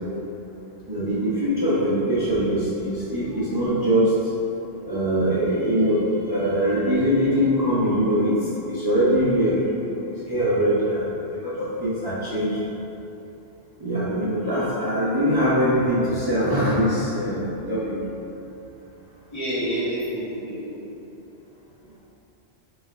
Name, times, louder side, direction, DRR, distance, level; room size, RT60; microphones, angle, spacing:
voice 1, 0.9-4.1 4.9-8.4 8.7-11.1 11.4-12.6 13.8-18.0, equal, 30° right, -10 dB, 0.4 m, -22 dB
voice 2, 19.3-21.0, equal, 30° left, -12 dB, 1.5 m, -28 dB
4.4 x 4.1 x 2.4 m, 3.0 s
omnidirectional pair, 1.2 m